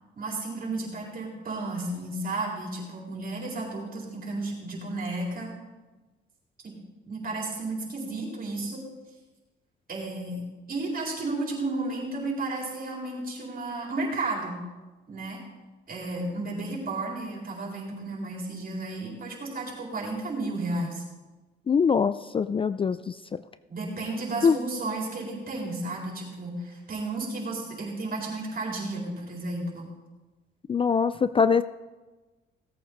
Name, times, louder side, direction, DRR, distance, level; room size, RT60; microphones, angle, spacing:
voice 1, 0.2-5.5 6.6-6.7 7.1-8.8 9.9-10.4 10.7-14.6 15.1-15.4 15.9-21.0 23.7-29.9, right 2 dB, 45° right, -2 dB, 4.2 m, -33 dB
voice 2, 21.7-23.4 24.4-24.6 30.7-31.6, left 6 dB, 25° left, 14 dB, 0.3 m, -23 dB
17.0 x 8.6 x 4.0 m, 1.2 s
cardioid pair, 90°, 20 cm